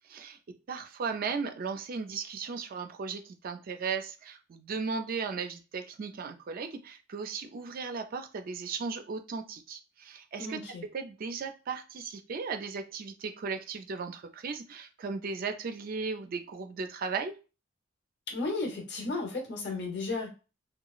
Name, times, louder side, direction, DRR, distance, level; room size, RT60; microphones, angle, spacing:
voice 1, 0.7-10.6 10.9-17.3, right 5 dB, 50° right, 7 dB, 0.4 m, -36 dB
voice 2, 10.4-10.9 18.3-20.3, left 3 dB, 60° left, 3 dB, 0.8 m, -34 dB
2.9 x 2.2 x 2.4 m, 0.32 s
head